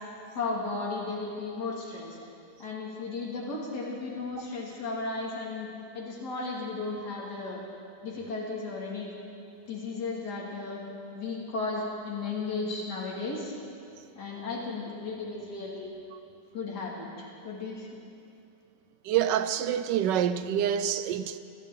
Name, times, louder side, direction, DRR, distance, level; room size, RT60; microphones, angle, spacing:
voice 1, 0.3-2.2 2.6-5.7 5.9-7.6 8.0-9.1 9.7-10.8 11.1-13.5 14.2-15.9 16.5-17.9, left 3 dB, 70° left, 3.0 m, -35 dB
voice 2, 19.1-21.4, right 9 dB, 85° right, 1.3 m, -27 dB
24.0 x 12.5 x 3.8 m
omnidirectional pair, 1.9 m